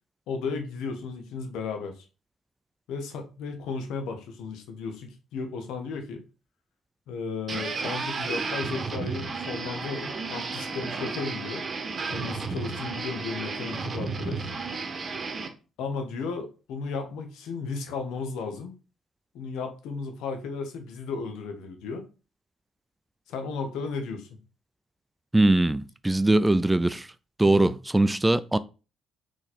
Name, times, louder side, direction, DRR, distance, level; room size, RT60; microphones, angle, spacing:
voice 1, 0.3-2.0 2.9-6.2 7.1-11.6 12.1-14.5 15.8-18.7 19.3-22.0 23.3-24.3 27.4-27.7, left 4 dB, 75° left, 1.0 m, -34 dB
sound 1, 7.5-15.5, right 4 dB, 45° right, 0.9 m, -33 dB
voice 2, 25.3-27.1 27.4-28.6, right 2 dB, 15° right, 0.3 m, -21 dB
4.1 x 3.1 x 4.2 m
hypercardioid pair, 55°, 0 cm